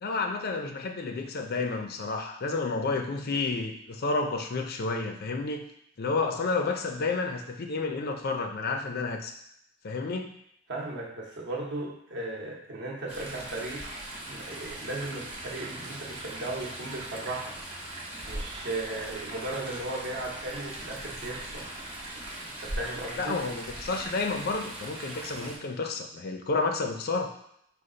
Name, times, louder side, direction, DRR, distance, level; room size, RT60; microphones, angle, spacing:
voice 1, 0.0-5.6 6.0-9.4 9.8-10.3 23.2-27.3, left 3 dB, 50° left, 4 dB, 0.5 m, -30 dB
voice 2, 10.7-13.9 14.3-17.6 18.3-21.7 22.6-23.4, right 2 dB, 60° right, -2 dB, 1.0 m, -36 dB
Chatter / Stream, 13.1-25.5, right 1 dB, 30° right, 1.2 m, -40 dB
5.0 x 2.4 x 3.8 m, 0.73 s
head